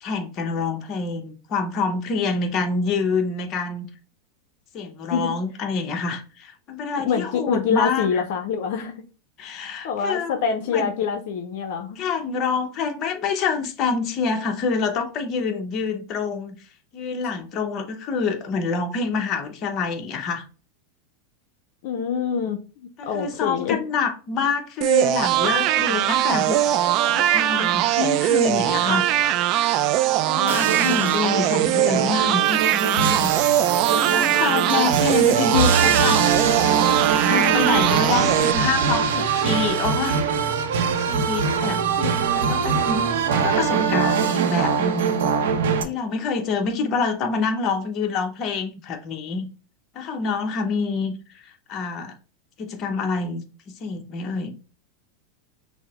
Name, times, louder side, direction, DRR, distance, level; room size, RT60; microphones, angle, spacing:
voice 1, 0.0-3.9 4.7-8.3 9.4-10.4 10.7-10.9 12.0-16.6 16.9-20.4 23.0-26.6 27.1-29.1 30.2-33.3 33.9-36.2 37.0-40.2 41.0-41.8 42.3-45.3 45.8-49.5 49.9-51.1 51.7-52.1 52.6-54.5, left 4 dB, 35° left, 0.8 m, -26 dB
voice 2, 7.0-9.0 9.8-12.0 21.8-23.8 42.0-42.1, left 6 dB, 65° left, 0.6 m, -25 dB
sound 1, 24.8-38.5, right 13 dB, 45° right, 0.3 m, -21 dB
sound 2, 30.5-45.8, right 6 dB, 80° right, 0.7 m, -23 dB
6.1 x 2.1 x 3.5 m
supercardioid pair, 135°, 0 cm